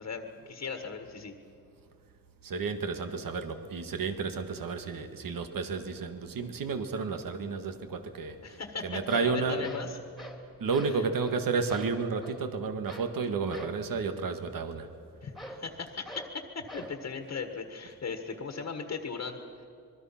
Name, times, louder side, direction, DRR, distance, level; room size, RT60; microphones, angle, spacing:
voice 1, 0.0-1.3 8.4-10.0 10.8-11.1 15.2-19.7, left 5 dB, 50° left, 5 dB, 1.5 m, -38 dB
voice 2, 2.4-9.7 10.6-14.9, right 4 dB, 75° right, 8 dB, 1.7 m, -32 dB
sound 1, 8.5-8.6 8.9-10.4 10.7-11.0 11.2-11.4 11.7-12.4 12.9-13.1 13.5-13.8 15.3-15.7 16.0-16.3 16.7-17.0, equal, ahead, 2.6 m, -45 dB
26.0 x 22.0 x 5.8 m, 2.5 s
wide cardioid pair, 145°, 34 cm